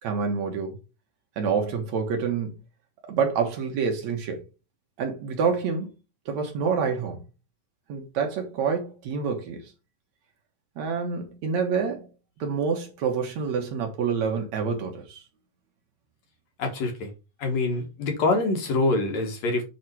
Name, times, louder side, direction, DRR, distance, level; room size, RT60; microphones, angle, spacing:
voice 1, 0.0-0.8 1.4-2.5 3.1-4.4 5.0-5.9 6.3-7.2 7.9-9.7 10.8-12.1 12.4-15.2, right 6 dB, 65° right, 2.5 m, -27 dB
voice 2, 16.6-17.1 17.4-19.6, left 2 dB, 65° left, 2.5 m, -25 dB
8.2 x 3.6 x 4.5 m
omnidirectional pair, 3.5 m